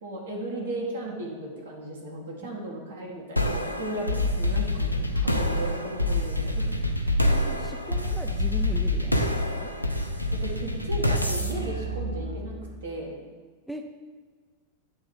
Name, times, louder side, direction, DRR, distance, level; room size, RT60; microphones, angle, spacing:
voice 1, 0.0-6.6 10.3-12.5 12.8-13.2, right 1 dB, 65° right, -2 dB, 1.5 m, -36 dB
sound 1, 3.4-12.8, left 1 dB, 90° left, 0.4 m, -27 dB
voice 2, 7.3-9.7 13.7-13.9, left 1 dB, ahead, 4 dB, 0.4 m, -39 dB
8.1 x 3.1 x 5.4 m, 1.5 s
figure-of-eight pair, 90°, 0 cm